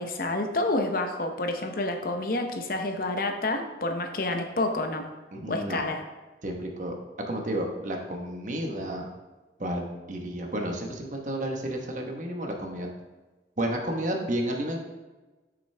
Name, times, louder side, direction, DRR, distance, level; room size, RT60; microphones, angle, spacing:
voice 1, 0.0-5.1 5.5-6.0, left 2 dB, 55° left, 5 dB, 0.8 m, -29 dB
voice 2, 5.3-5.9 6.4-6.9 7.3-9.1 9.6-12.9 13.6-14.8, right 1 dB, 45° right, 2 dB, 1.1 m, -31 dB
8.8 x 6.2 x 3.3 m, 1.2 s
head